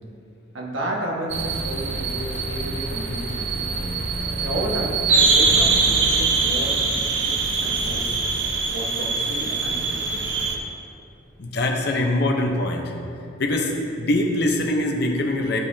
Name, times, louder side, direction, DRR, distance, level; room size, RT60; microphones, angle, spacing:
voice 1, 0.5-3.6 4.4-7.3 7.6-8.2 8.7-10.3, right 1 dB, 80° right, -2 dB, 1.4 m, -31 dB
sound 1, 1.3-10.6, right 4 dB, 60° right, 0.8 m, -23 dB
voice 2, 11.4-12.9 13.4-15.6, left 1 dB, 55° left, 1 dB, 0.8 m, -23 dB
12.0 x 5.4 x 2.8 m, 2.7 s
head